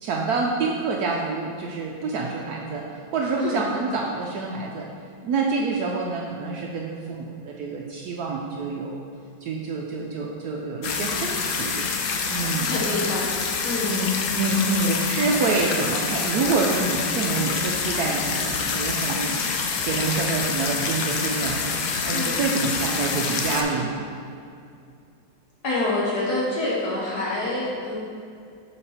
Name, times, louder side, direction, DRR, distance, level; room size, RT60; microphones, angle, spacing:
voice 1, 0.0-4.9 5.2-9.0 9.4-11.9 12.3-12.7 13.9-14.1 14.3-24.1, right 4 dB, 70° right, -1 dB, 0.9 m, -27 dB
sound 1, 10.8-23.6, left 5 dB, 80° left, 0.6 m, -26 dB
voice 2, 12.6-13.2 13.6-14.0 22.1-22.3 25.6-28.0, left 2 dB, 60° left, -5 dB, 1.4 m, -26 dB
6.8 x 4.7 x 4.3 m, 2.4 s
omnidirectional pair, 2.0 m